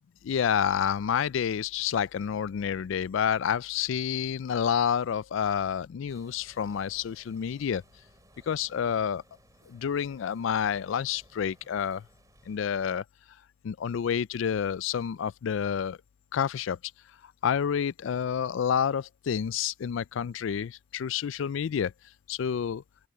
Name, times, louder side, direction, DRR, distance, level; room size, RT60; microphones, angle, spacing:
voice 1, 0.2-7.8 8.5-9.2 9.7-12.0 12.5-13.0 13.6-16.0 16.3-16.8 17.4-21.9 22.3-22.8, left 8 dB, 65° left, 0.3 m, -29 dB
sound 1, 6.1-12.6, right 1 dB, 15° right, 3.3 m, -60 dB
open air
head